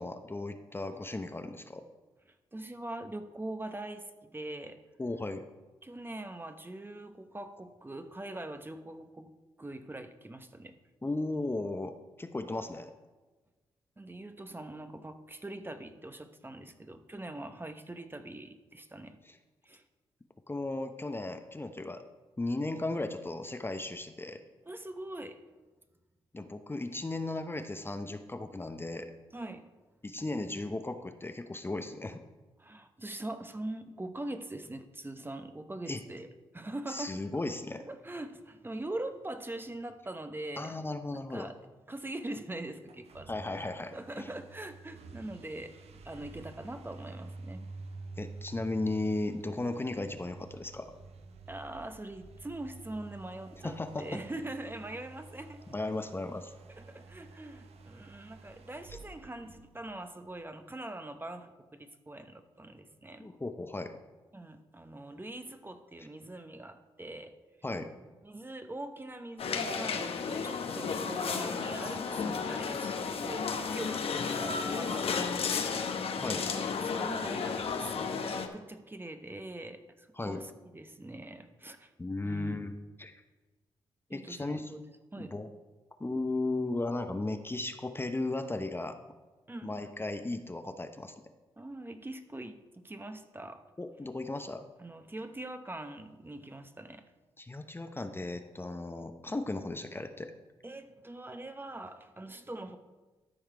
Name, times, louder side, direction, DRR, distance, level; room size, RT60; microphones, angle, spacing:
voice 1, 0.0-1.8 5.0-5.4 11.0-12.9 19.3-19.4 20.5-22.0 22.4-24.4 26.3-29.1 30.0-32.2 35.9-36.0 36.9-37.8 40.6-41.5 43.3-44.3 48.2-50.9 53.6-54.2 55.7-56.5 63.2-63.9 67.6-67.9 76.2-76.5 80.2-80.4 82.0-82.7 83.0-83.2 84.1-84.7 85.2-85.5 86.0-89.0 89.6-91.2 93.8-94.6 97.4-100.3, left 2 dB, 20° left, 7 dB, 0.8 m, -36 dB
voice 2, 2.5-4.8 5.8-10.8 14.0-19.2 19.6-19.8 24.7-25.4 29.3-29.7 32.6-36.3 36.5-37.2 37.8-40.7 41.1-41.6 41.9-45.7 46.0-47.7 51.5-55.6 56.7-63.3 64.3-67.3 68.2-76.2 76.8-81.9 82.2-82.6 84.1-84.8 85.1-85.4 89.5-89.8 91.6-93.6 94.8-97.0 100.6-102.8, right 1 dB, 20° right, 8 dB, 0.9 m, -43 dB
sound 1, 42.8-60.3, right 3 dB, 65° right, 0.8 m, -50 dB
sound 2, 69.4-78.5, left 5 dB, 60° left, 0.9 m, -33 dB
13.0 x 4.8 x 4.6 m, 1.2 s
supercardioid pair, 45°, 11 cm